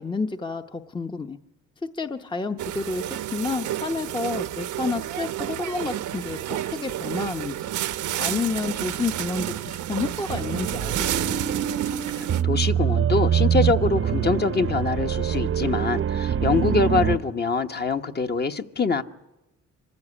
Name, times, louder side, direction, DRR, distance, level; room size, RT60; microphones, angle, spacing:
voice 1, 0.0-1.4 1.9-7.7 8.2-11.4, left 4 dB, 15° left, 7 dB, 0.8 m, -30 dB
sound 1, 2.6-12.4, right 12 dB, 75° right, 0.9 m, -30 dB
sound 2, 10.3-17.2, right 9 dB, 45° right, 0.8 m, -24 dB
voice 2, 12.2-19.0, left 4 dB, 35° left, 7 dB, 1.2 m, -24 dB
26.0 x 15.0 x 9.9 m, 1.0 s
cardioid pair, 100°, 30 cm